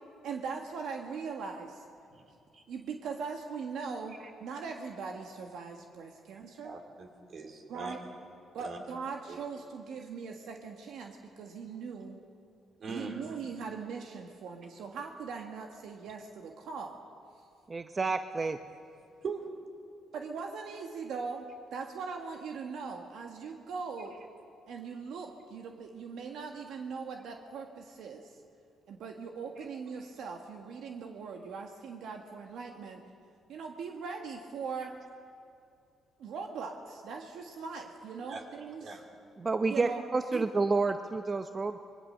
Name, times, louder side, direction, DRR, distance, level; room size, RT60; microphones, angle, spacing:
voice 1, 0.2-1.8 2.7-6.7 7.7-8.0 8.5-12.2 12.9-17.0 20.1-24.2 24.7-28.3 28.9-33.0 33.5-35.0 36.2-38.9 39.7-40.0 40.3-40.4, right 5 dB, 75° right, 3 dB, 1.6 m, -40 dB
voice 2, 6.6-7.9 8.6-8.8 9.3-9.4 12.8-13.4 19.2-19.6 29.6-29.7 38.2-38.4 38.8-39.0, right 4 dB, 55° right, 3 dB, 3.6 m, -41 dB
voice 3, 17.7-18.6 39.4-41.8, right 3 dB, 30° right, 8 dB, 0.7 m, -29 dB
25.0 x 21.5 x 6.6 m, 2.5 s
cardioid pair, 90°, 0 cm